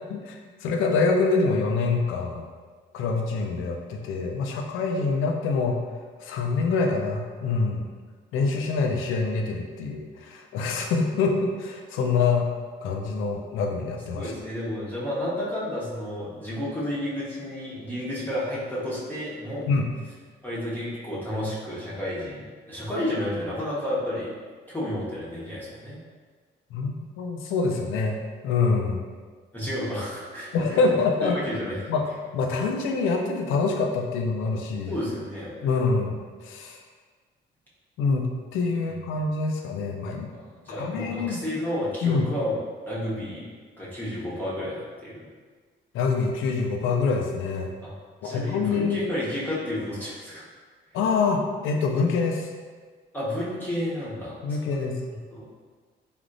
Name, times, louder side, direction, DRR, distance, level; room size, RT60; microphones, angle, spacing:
voice 1, 0.1-2.5 2.9-5.8 6.2-7.8 8.3-12.5 12.8-14.3 19.7-19.9 26.7-29.1 30.5-31.4 31.9-35.0 35.6-36.8 38.0-40.3 40.7-41.4 42.0-42.3 45.9-47.7 48.2-49.0 50.9-52.5 54.4-55.0, left 4 dB, 90° left, 2 dB, 0.4 m, -25 dB
voice 2, 14.1-19.7 20.4-24.3 24.7-26.0 29.5-30.8 31.2-31.8 34.9-35.7 40.3-42.6 42.9-43.5 43.8-45.3 47.8-48.0 48.2-50.5 53.1-54.4 55.3-55.5, left 1 dB, 10° left, -8 dB, 0.8 m, -31 dB
3.4 x 2.4 x 2.5 m, 1.5 s
cardioid pair, 90°, 20 cm